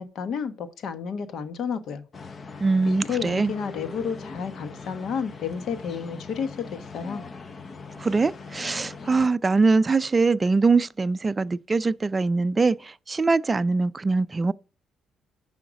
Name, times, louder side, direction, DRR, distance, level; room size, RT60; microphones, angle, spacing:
voice 1, 0.0-2.0 2.8-7.2, left 6 dB, 65° left, 1.2 m, -31 dB
sound 1, 2.1-9.3, left 4 dB, 35° left, 0.8 m, -40 dB
voice 2, 2.6-3.5 8.0-14.5, right 3 dB, 20° right, 0.4 m, -22 dB
10.5 x 5.7 x 5.0 m
cardioid pair, 115°, 0 cm